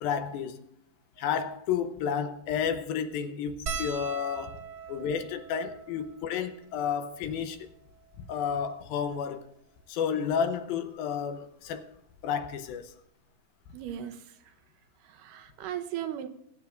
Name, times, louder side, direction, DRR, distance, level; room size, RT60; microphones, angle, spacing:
voice 1, 0.0-0.6 1.2-4.6 4.9-7.7 8.3-9.5 9.9-12.0 12.2-13.0, left 7 dB, 80° left, 2.7 m, -31 dB
sound 1, 3.7-8.3 9.0-9.1 9.3-9.5 10.7-11.0 12.4-12.5 12.8-13.0, right 5 dB, 60° right, 1.0 m, -41 dB
voice 2, 13.7-14.5 15.0-16.3, right 10 dB, 75° right, 2.1 m, -37 dB
22.5 x 9.1 x 2.6 m
omnidirectional pair, 4.3 m